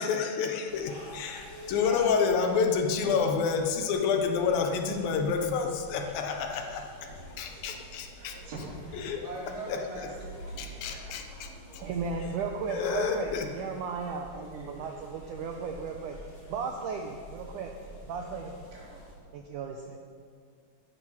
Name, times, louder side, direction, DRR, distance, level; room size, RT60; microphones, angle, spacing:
voice 1, 0.0-6.8 7.4-8.4 8.9-9.2 9.7-9.8 10.6-11.8 12.6-13.5, left 5 dB, 70° left, 4 dB, 3.0 m, -29 dB
sound 1, 0.7-19.1, equal, 35° left, 3.9 m, -47 dB
voice 2, 6.5-6.8 7.5-7.6 8.2-11.1 12.7-12.8 14.3-14.7 18.7-19.0, right 2 dB, 90° right, -4 dB, 5.5 m, -43 dB
voice 3, 11.8-14.4 14.8-17.7 18.0-18.5 19.3-20.0, right 5 dB, 70° right, 2 dB, 2.1 m, -35 dB
15.0 x 13.0 x 5.9 m, 2.1 s
omnidirectional pair, 4.4 m